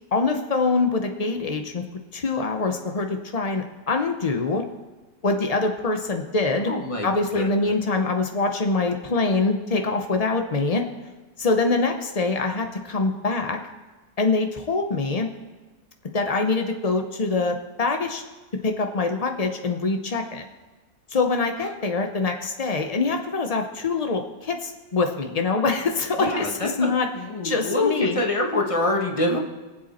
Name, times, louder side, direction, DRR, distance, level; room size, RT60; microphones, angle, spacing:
voice 1, 0.1-1.8 2.1-4.7 5.2-6.7 7.0-10.9 11.4-13.6 14.2-15.3 16.1-18.2 18.6-20.5 21.1-27.1 27.4-28.2, left 3 dB, 85° left, 5 dB, 0.3 m, -24 dB
voice 2, 6.7-7.5 26.2-29.4, left 2 dB, 20° left, 1 dB, 1.2 m, -25 dB
22.5 x 7.7 x 4.2 m, 1.2 s
omnidirectional pair, 2.0 m